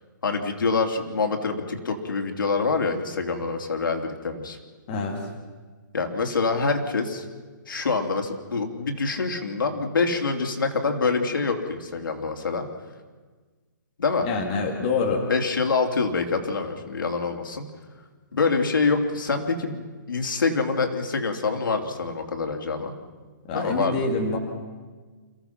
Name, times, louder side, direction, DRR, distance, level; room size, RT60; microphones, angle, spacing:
voice 1, 0.2-4.6 5.9-7.3 7.7-12.7 14.0-14.3 15.3-17.7 18.3-22.9 23.5-24.0, left 4 dB, 90° left, 3 dB, 3.1 m, -25 dB
voice 2, 4.9-5.2 14.2-15.2 23.5-24.4, left 4 dB, 20° left, 0 dB, 2.3 m, -26 dB
29.0 x 16.0 x 5.9 m, 1.4 s
hypercardioid pair, 175°, 11 cm